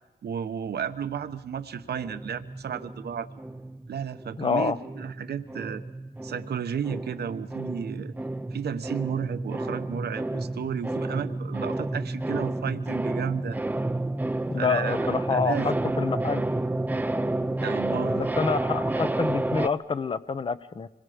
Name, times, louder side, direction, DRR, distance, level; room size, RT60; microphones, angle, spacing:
voice 1, 0.2-3.4 3.9-5.8 6.2-8.1 8.5-13.6 14.6-15.8 17.6-18.2, right 8 dB, 70° right, 9 dB, 1.0 m, -33 dB
sound 1, 2.0-4.6 4.8-19.7, right 2 dB, 10° right, 0.6 m, -30 dB
voice 2, 4.4-4.8 14.5-16.4 18.2-20.9, left 5 dB, 30° left, 13 dB, 0.7 m, -27 dB
26.0 x 21.5 x 5.1 m, 1.1 s
wide cardioid pair, 135°, 17 cm